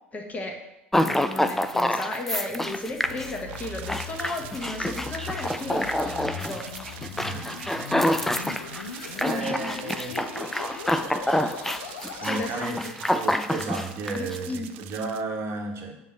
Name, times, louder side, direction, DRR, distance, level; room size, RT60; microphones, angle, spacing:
voice 1, 0.1-0.6 1.0-7.0 9.1-9.8 12.2-12.9 14.1-14.7, left 2 dB, 25° left, 2 dB, 1.1 m, -35 dB
sound 1, 0.9-14.4, left 1 dB, 5° left, 0.4 m, -27 dB
sound 2, 2.6-12.7, left 6 dB, 80° left, 0.6 m, -40 dB
sound 3, 3.5-15.2, right 12 dB, 70° right, 0.3 m, -44 dB
voice 2, 7.2-7.6 9.1-10.2 12.2-16.0, right 3 dB, 45° right, 2 dB, 1.3 m, -33 dB
7.2 x 3.1 x 5.6 m, 0.92 s
hypercardioid pair, 75°, 6 cm